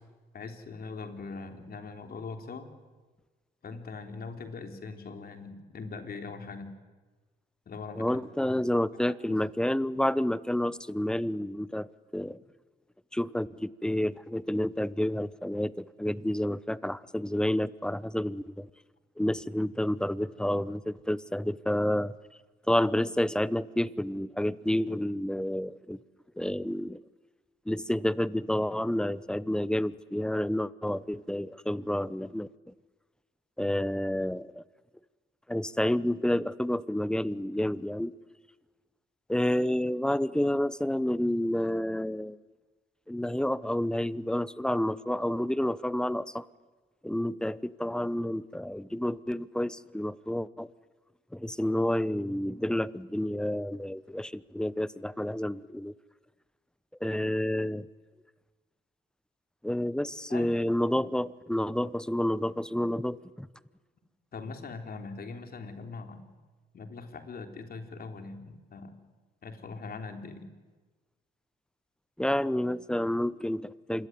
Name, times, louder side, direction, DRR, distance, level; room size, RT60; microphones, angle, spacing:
voice 1, 0.3-2.7 3.6-6.7 7.7-8.2 8.4-8.5 9.3-9.4 60.3-60.8 64.3-66.2 66.7-69.0 69.4-70.5, left 4 dB, 50° left, 6 dB, 3.7 m, -41 dB
voice 2, 8.0-12.4 13.1-18.7 19.2-22.1 22.7-26.0 26.4-27.0 27.7-32.5 33.6-34.6 35.5-38.1 39.3-42.4 43.1-46.4 47.0-50.7 51.3-55.9 57.0-57.9 59.6-63.5 72.2-74.1, left 1 dB, 5° left, 18 dB, 0.8 m, -29 dB
27.0 x 22.0 x 9.5 m, 1.3 s
cardioid pair, 90°, 20 cm